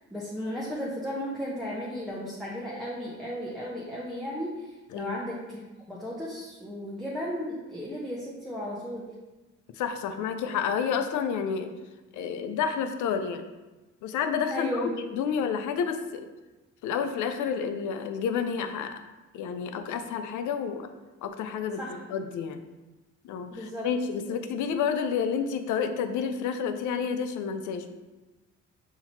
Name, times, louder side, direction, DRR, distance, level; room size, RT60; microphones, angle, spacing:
voice 1, 0.1-5.6 5.9-9.1 14.5-14.9 21.8-22.0 23.5-23.9, equal, ahead, -6 dB, 0.7 m, -35 dB
voice 2, 9.8-11.7 12.1-13.5 14.0-16.3 16.8-19.0 19.3-20.9 21.2-22.6 23.2-27.9, left 6 dB, 80° left, 8 dB, 0.5 m, -30 dB
5.7 x 2.8 x 2.9 m, 1.1 s
cardioid pair, 90°, 30 cm